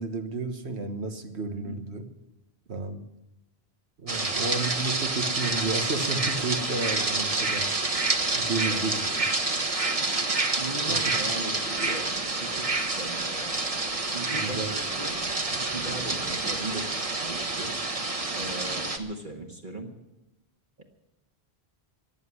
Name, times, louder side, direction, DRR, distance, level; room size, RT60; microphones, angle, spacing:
voice 1, 0.0-2.1 2.7-3.0 4.0-7.7 8.3-9.0 10.9-11.0 14.3-14.7, right 3 dB, 85° right, 7 dB, 1.6 m, -32 dB
sound 1, 4.1-19.0, right 3 dB, 35° right, 1.3 m, -28 dB
voice 2, 10.6-12.1 12.4-13.5 14.1-15.2 15.5-17.7 18.3-19.9 20.8-20.9, right 2 dB, 50° right, 1 dB, 1.7 m, -38 dB
14.5 x 9.7 x 9.8 m, 1.0 s
omnidirectional pair, 1.1 m